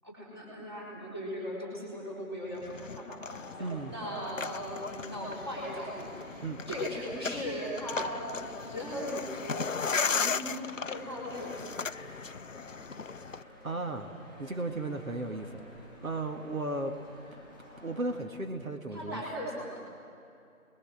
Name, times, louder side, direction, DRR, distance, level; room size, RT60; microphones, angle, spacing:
voice 1, 0.0-6.3 6.7-8.3 8.6-11.5 18.9-19.8, equal, 20° right, -8 dB, 4.3 m, -38 dB
sound 1, 2.6-13.4, left 5 dB, 65° left, 0.5 m, -37 dB
sound 2, 3.1-18.2, left 1 dB, ahead, 6.0 m, -51 dB
voice 2, 3.6-3.9 6.4-6.7 13.6-14.1 14.4-15.5 16.0-16.9 17.8-19.2, right 2 dB, 70° right, 4 dB, 2.0 m, -35 dB
27.5 x 21.5 x 6.5 m, 2.6 s
figure-of-eight pair, 170°, 42 cm